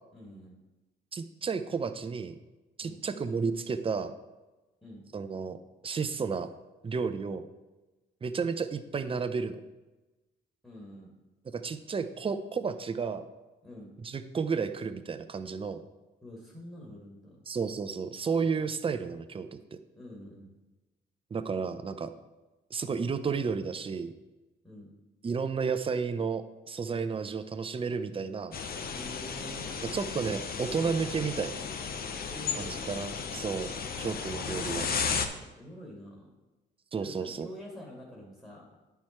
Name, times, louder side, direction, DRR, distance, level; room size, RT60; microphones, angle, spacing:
voice 1, 0.1-0.6 2.8-3.0 4.8-5.0 10.6-11.1 13.6-13.9 16.2-17.4 19.9-20.5 24.6-24.9 28.9-29.8 32.3-33.0 35.4-36.3 37.0-38.7, left 1 dB, 5° left, -3 dB, 2.0 m, -47 dB
voice 2, 1.1-2.4 2.8-4.1 5.1-5.6 5.8-6.5 6.8-7.5 8.2-9.6 11.5-13.3 14.0-15.8 17.5-19.8 21.3-22.1 22.7-24.1 25.2-28.6 29.9-31.6 32.6-33.7 34.0-34.9 36.9-37.5, right 5 dB, 25° right, 10 dB, 0.6 m, -32 dB
sound 1, 28.5-35.3, left 6 dB, 50° left, 0.8 m, -34 dB
9.1 x 4.6 x 4.3 m, 1.1 s
cardioid pair, 90°, 20 cm